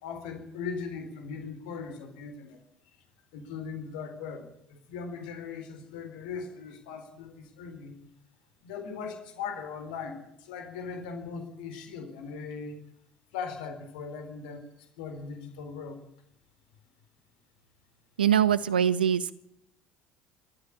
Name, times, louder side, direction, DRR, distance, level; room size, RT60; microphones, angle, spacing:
voice 1, 0.0-2.6 3.3-8.0 8.6-12.8 13.3-14.7 15.0-16.0, left 5 dB, 70° left, 7 dB, 4.0 m, -39 dB
voice 2, 18.2-19.3, right 9 dB, 80° right, 17 dB, 1.0 m, -23 dB
28.5 x 14.0 x 8.6 m, 0.78 s
figure-of-eight pair, 60°, 5 cm